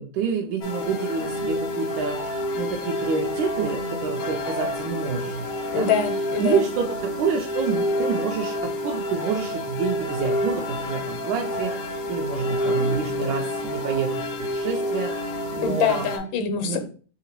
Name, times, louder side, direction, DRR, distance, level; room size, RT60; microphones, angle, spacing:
voice 1, 0.0-5.5 5.8-5.9 6.4-16.1 16.6-16.8, right 6 dB, 80° right, 1 dB, 1.3 m, -28 dB
sound 1, 0.6-16.2, left 1 dB, 65° left, 0.9 m, -28 dB
voice 2, 5.7-6.6 15.6-16.8, left 6 dB, 85° left, 7 dB, 1.4 m, -24 dB
3.8 x 3.5 x 2.9 m, 0.40 s
omnidirectional pair, 2.1 m